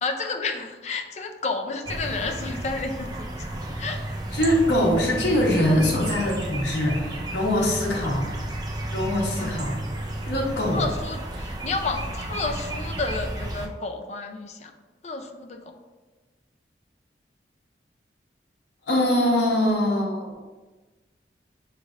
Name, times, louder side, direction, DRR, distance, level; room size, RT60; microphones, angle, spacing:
voice 1, 0.0-4.0 5.7-5.8 7.8-8.2 9.4-9.7 10.7-14.7 15.0-15.7, left 3 dB, 40° left, 5 dB, 0.4 m, -31 dB
sound 1, 1.9-13.7, right 1 dB, 25° right, 0.4 m, -32 dB
voice 2, 4.3-8.2 8.9-9.7 10.2-10.9 18.9-20.3, left 1 dB, 75° left, -3 dB, 1.1 m, -23 dB
6.3 x 3.3 x 2.4 m, 1.3 s
head